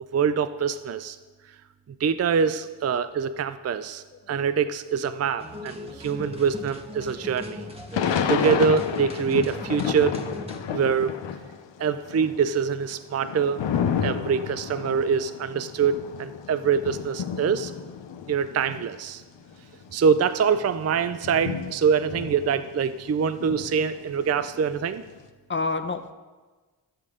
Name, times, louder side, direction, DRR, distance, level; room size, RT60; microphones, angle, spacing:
voice 1, 0.1-1.2 2.0-7.7 8.3-10.2 10.7-11.2 11.8-13.6 14.0-17.7 18.3-19.2 19.9-25.0, right 6 dB, 35° right, 13 dB, 0.4 m, -24 dB
voice 2, 4.1-4.5 25.5-26.1, left 3 dB, 25° left, 7 dB, 0.8 m, -30 dB
sound 1, 5.4-10.6, left 1 dB, 15° right, 1.6 m, -38 dB
Thunder / Rain, 7.9-11.6 11.9-18.9 19.5-19.6 19.8-23.0 23.4-25.1, left 7 dB, 80° left, 0.8 m, -31 dB
13.0 x 7.7 x 3.7 m, 1.3 s
cardioid pair, 55°, 43 cm